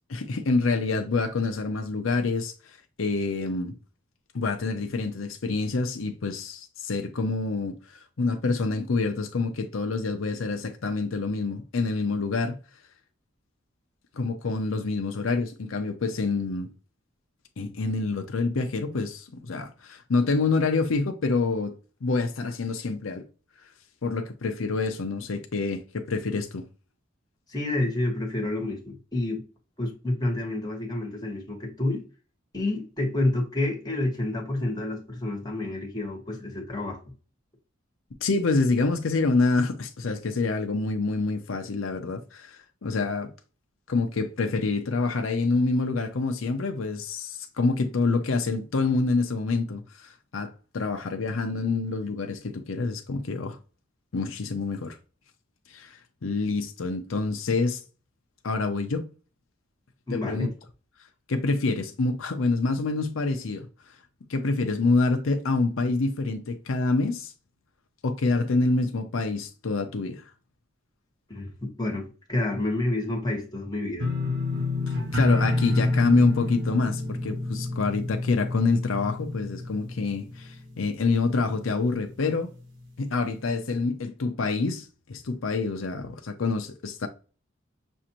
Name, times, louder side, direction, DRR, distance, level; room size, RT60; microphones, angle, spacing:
voice 1, 0.1-2.5 3.0-3.8 4.3-12.6 14.1-16.7 17.6-21.7 22.0-23.2 24.0-26.7 38.2-43.3 43.9-53.6 54.1-55.0 55.7-57.8 58.4-59.1 60.1-60.5 61.3-63.7 64.3-67.3 68.0-70.2 74.9-82.5 83.0-87.1, left 3 dB, 80° left, 0.6 m, -27 dB
voice 2, 27.5-29.4 29.8-32.0 32.5-37.0 60.1-60.5 71.3-74.1, left 2 dB, 20° left, 1.4 m, -29 dB
sound 1, 74.0-80.9 81.2-81.7 82.1-82.2, left 2 dB, 65° right, 1.0 m, -28 dB
6.3 x 2.5 x 2.9 m
head